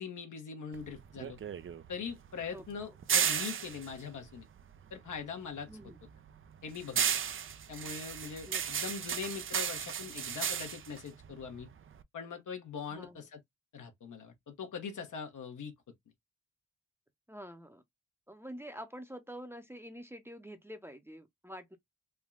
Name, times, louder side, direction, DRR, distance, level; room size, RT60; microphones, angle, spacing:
voice 1, 0.0-1.4 1.9-4.5 4.9-5.7 6.6-7.0 7.7-11.7 12.1-13.4 13.7-15.7, left 6 dB, 70° left, 0.9 m, -42 dB
sound 1, 0.7-5.2 5.6-12.0, right 8 dB, 40° right, 0.4 m, -35 dB
voice 2, 2.5-2.9 5.7-6.0 8.5-8.6 12.9-13.2 17.3-17.8 18.3-21.8, equal, 10° right, 0.7 m, -47 dB
3.4 x 2.2 x 2.4 m
supercardioid pair, 45°, 32 cm